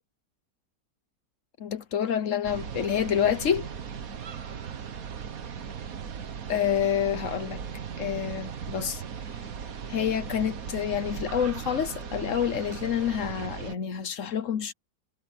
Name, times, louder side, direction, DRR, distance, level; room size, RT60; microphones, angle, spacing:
voice 1, 1.6-3.7 6.5-7.6 8.0-9.0 9.9-14.7, left 8 dB, 55° left, 1.1 m, -28 dB
sound 1, 2.4-13.7, right 7 dB, 55° right, 1.6 m, -38 dB
omnidirectional pair, 1.9 m